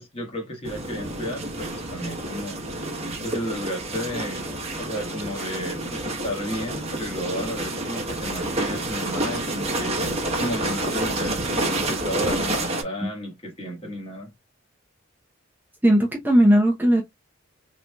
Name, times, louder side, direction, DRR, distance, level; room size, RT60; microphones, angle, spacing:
voice 1, 0.0-2.6 3.2-4.4 4.8-14.3, equal, 25° left, 1.4 m, -33 dB
sound 1, 0.6-12.8, right 2 dB, 30° right, 1.1 m, -29 dB
voice 2, 15.8-17.0, equal, 10° right, 0.6 m, -17 dB
3.9 x 3.0 x 2.2 m
head